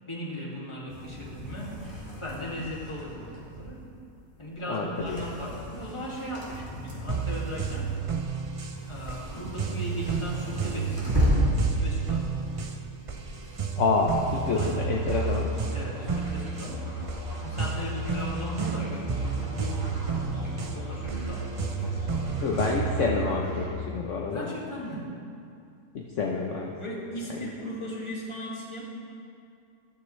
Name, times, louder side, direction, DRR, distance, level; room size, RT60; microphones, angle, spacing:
voice 1, 0.1-1.7 2.2-3.9 4.4-7.9 8.9-12.3 14.5-14.8 15.7-16.9 17.4-22.4 24.3-25.1 26.7-28.8, equal, 20° left, -5 dB, 2.1 m, -38 dB
sound 1, 0.9-14.8, equal, 15° right, 2.5 m, -33 dB
voice 2, 4.7-5.3 13.8-15.5 22.4-24.5 25.9-26.7 27.4-27.5, left 4 dB, 60° left, -1 dB, 1.1 m, -28 dB
sound 2, 7.1-23.1, right 5 dB, 60° right, 0.3 m, -32 dB
Musical instrument, 14.1-23.7, right 1 dB, 30° right, 3.4 m, -35 dB
13.5 x 13.0 x 3.2 m, 2.4 s
omnidirectional pair, 1.5 m